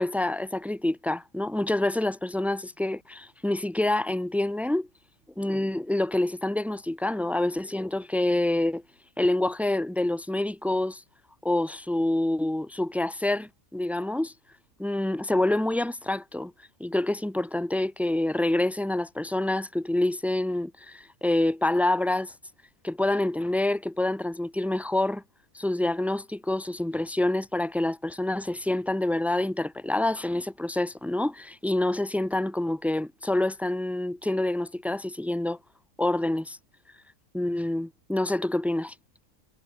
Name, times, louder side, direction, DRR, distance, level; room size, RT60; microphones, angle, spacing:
voice 1, 0.0-4.9 5.4-8.8 9.2-11.0 11.4-14.3 14.8-16.5 16.8-22.3 22.8-25.2 25.5-35.6 36.0-36.6 37.3-38.9, left 1 dB, ahead, 0.9 m, -27 dB
omnidirectional pair, 1.5 m